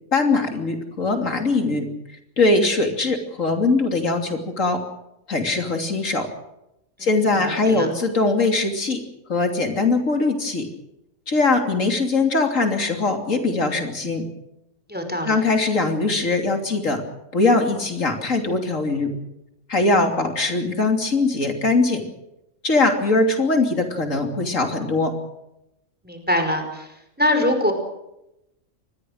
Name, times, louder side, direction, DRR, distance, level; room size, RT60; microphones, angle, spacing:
voice 1, 0.1-1.9 2.4-4.8 5.3-6.3 7.0-9.0 9.3-10.7 11.3-14.2 15.2-17.0 17.3-19.1 19.7-22.0 22.6-25.1, left 3 dB, 85° left, 4 dB, 3.4 m, -21 dB
voice 2, 7.4-7.9 14.9-15.3 26.0-26.9 27.2-27.7, left 1 dB, 5° right, 5 dB, 5.1 m, -23 dB
26.0 x 20.0 x 6.5 m, 0.88 s
omnidirectional pair, 1.3 m